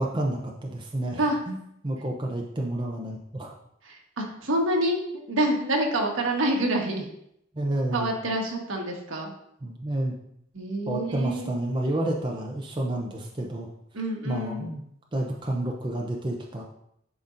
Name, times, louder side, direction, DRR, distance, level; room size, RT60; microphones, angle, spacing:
voice 1, 0.0-1.6 1.8-3.5 7.5-8.1 9.6-10.1 10.9-13.7 14.3-14.8 15.1-16.6, right 1 dB, 20° right, 0 dB, 0.6 m, -30 dB
voice 2, 3.8-5.0 5.3-7.1 7.9-9.3 10.5-11.5 13.9-14.7, right 1 dB, 75° right, 1 dB, 1.3 m, -27 dB
10.5 x 4.1 x 2.5 m, 0.76 s
head